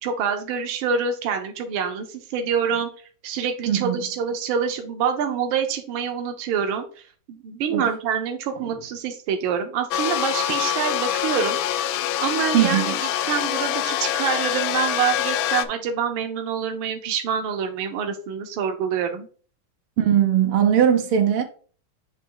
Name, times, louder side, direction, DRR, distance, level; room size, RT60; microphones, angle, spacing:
voice 1, 0.0-2.9 3.2-6.8 7.3-11.6 12.2-19.3, right 7 dB, 70° right, 1.6 m, -26 dB
voice 2, 3.7-4.0 7.7-7.8 12.5-13.0 20.0-21.4, right 9 dB, 90° right, 1.9 m, -19 dB
sound 1, 9.9-15.6, left 11 dB, 75° left, 1.3 m, -25 dB
8.0 x 3.1 x 4.7 m
omnidirectional pair, 2.4 m